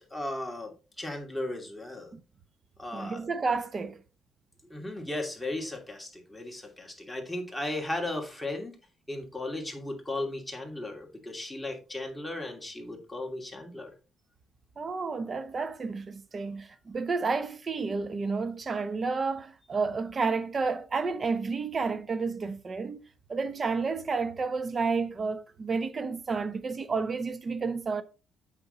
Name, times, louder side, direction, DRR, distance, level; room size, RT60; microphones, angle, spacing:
voice 1, 0.1-2.1 2.8-3.2 4.7-8.7 9.1-13.9, left 1 dB, 5° left, 2.7 m, -36 dB
voice 2, 2.9-4.0 14.8-23.0 23.3-28.0, right 4 dB, 40° right, 1.0 m, -31 dB
8.0 x 6.2 x 3.9 m
cardioid pair, 90°, 0 cm